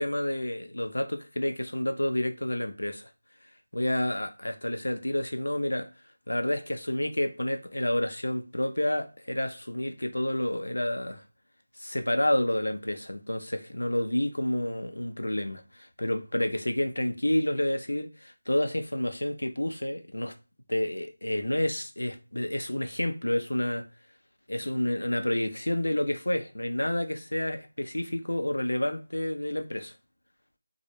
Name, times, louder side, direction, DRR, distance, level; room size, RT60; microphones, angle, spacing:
voice 1, 0.0-3.1 3.7-5.9 6.3-11.2 11.8-20.3 20.7-23.8 24.5-29.9, left 1 dB, 90° left, 0.4 m, -29 dB
2.1 x 2.0 x 3.0 m
figure-of-eight pair, 165°, 0 cm